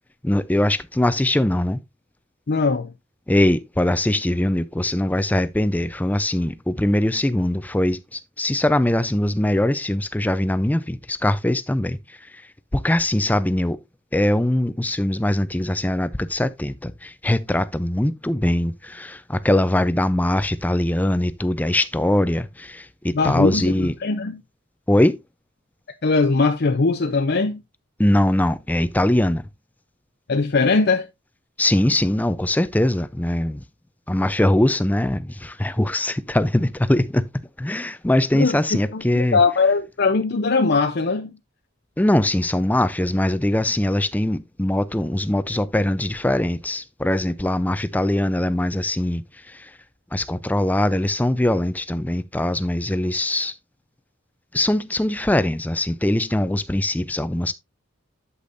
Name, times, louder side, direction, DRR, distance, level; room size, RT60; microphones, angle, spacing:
voice 1, 0.2-1.8 3.3-12.4 12.7-13.8 14.1-23.9 24.9-25.2 28.0-29.5 31.6-33.6 34.1-37.3 37.6-39.4 42.0-49.2 49.5-49.7 50.1-53.5 54.5-57.5, left 1 dB, 10° left, 0.4 m, -22 dB
voice 2, 2.5-2.9 23.1-24.4 26.0-27.6 30.3-31.0 38.3-41.3, left 4 dB, 50° left, 0.6 m, -20 dB
8.4 x 8.1 x 2.6 m
head